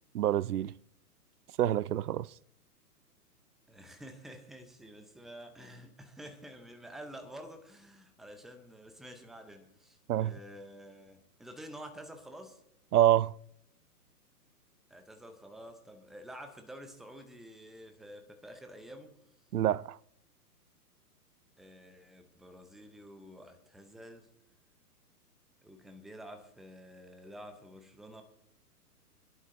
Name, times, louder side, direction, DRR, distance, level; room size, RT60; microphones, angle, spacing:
voice 1, 0.1-0.7 1.6-2.3 10.1-10.3 12.9-13.3 19.5-20.0, right 12 dB, 70° right, 0.6 m, -26 dB
voice 2, 3.7-12.6 14.9-19.1 21.6-24.3 25.6-28.2, equal, ahead, 0.5 m, -49 dB
26.0 x 11.0 x 3.7 m
hypercardioid pair, 125°, 48 cm